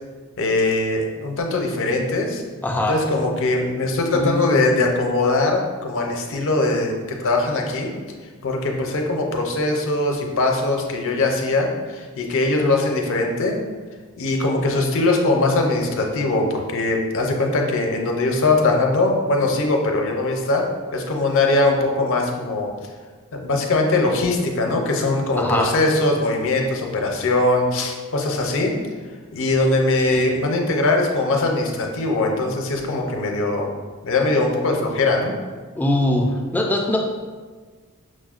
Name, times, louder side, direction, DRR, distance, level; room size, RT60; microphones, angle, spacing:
voice 1, 0.4-2.4 2.9-7.9 8.4-13.6 14.2-22.7 23.3-28.7 29.3-33.7 34.0-35.3, left 2 dB, 60° left, 2 dB, 0.5 m, -21 dB
voice 2, 2.6-3.0 4.1-4.6 25.4-25.8 30.1-30.3 35.8-37.0, left 1 dB, 10° left, 1 dB, 0.3 m, -22 dB
6.1 x 2.1 x 2.4 m, 1.4 s
head